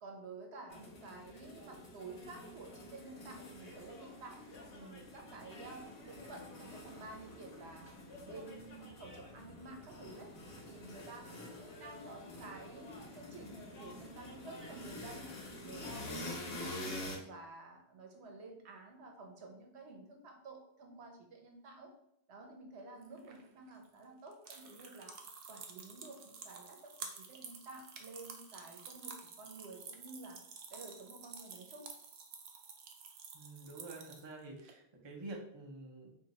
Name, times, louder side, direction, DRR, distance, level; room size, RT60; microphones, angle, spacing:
voice 1, 0.0-4.4 4.7-7.9 8.3-10.3 10.6-21.9 22.3-25.1 25.5-26.9 27.3-30.4 30.7-31.9, right 3 dB, 85° right, 2 dB, 1.0 m, -51 dB
sound 1, 0.7-17.2, left 1 dB, 70° left, 1.1 m, -48 dB
sound 2, 23.0-34.7, right 5 dB, 70° right, 0.7 m, -51 dB
voice 2, 33.3-36.2, right 2 dB, 30° right, 0 dB, 0.6 m, -48 dB
2.8 x 2.6 x 4.0 m, 0.74 s
omnidirectional pair, 1.1 m